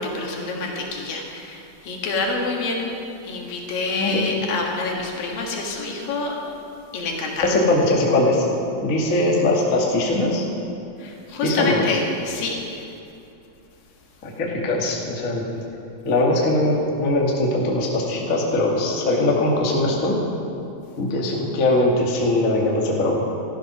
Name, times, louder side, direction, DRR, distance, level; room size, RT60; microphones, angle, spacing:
voice 1, 0.0-2.9 3.2-6.4 6.9-7.6 11.0-12.9, left 3 dB, 65° left, -1 dB, 3.2 m, -27 dB
voice 2, 7.4-8.4 8.8-10.4 11.4-11.8 14.2-15.4 16.0-20.2 21.0-23.2, left 2 dB, 30° left, -2 dB, 1.6 m, -21 dB
14.5 x 13.0 x 6.1 m, 2.7 s
omnidirectional pair, 4.5 m